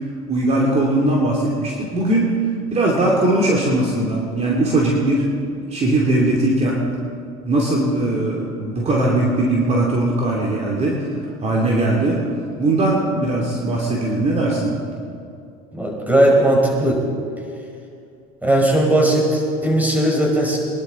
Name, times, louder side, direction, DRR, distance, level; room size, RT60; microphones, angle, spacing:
voice 1, 0.3-2.3 2.7-5.3 5.6-6.8 7.4-11.1 11.4-12.2 12.6-14.8, right 1 dB, 35° right, -2 dB, 2.7 m, -19 dB
voice 2, 15.7-17.0 18.4-20.6, right 1 dB, 10° right, -1 dB, 5.0 m, -17 dB
23.5 x 11.5 x 4.3 m, 2.4 s
hypercardioid pair, 80°, 20 cm